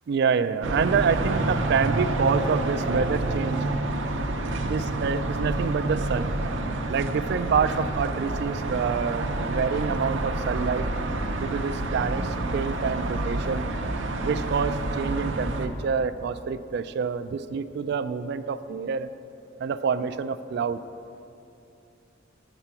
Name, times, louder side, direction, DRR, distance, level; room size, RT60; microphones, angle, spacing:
voice 1, 0.1-3.7 4.7-6.3 6.9-10.9 11.4-13.7 14.2-19.1 19.6-20.8, right 6 dB, 60° right, 13 dB, 0.3 m, -27 dB
sound 1, 0.6-15.7, right 2 dB, 75° right, 0.7 m, -28 dB
7.6 x 6.9 x 5.8 m, 2.6 s
head